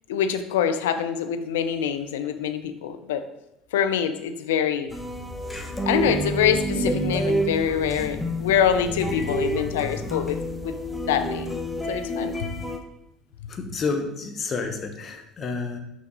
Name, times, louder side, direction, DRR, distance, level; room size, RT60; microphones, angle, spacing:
voice 1, 0.1-3.2 3.7-4.9 5.9-10.7 11.1-11.5 11.9-12.5, left 8 dB, 80° left, 9 dB, 0.5 m, -25 dB
sound 1, 4.9-12.8, equal, 15° left, 1.1 m, -28 dB
voice 2, 13.5-15.8, left 4 dB, 40° left, 5 dB, 1.2 m, -30 dB
6.1 x 5.7 x 4.0 m, 0.86 s
hypercardioid pair, 70°, 0 cm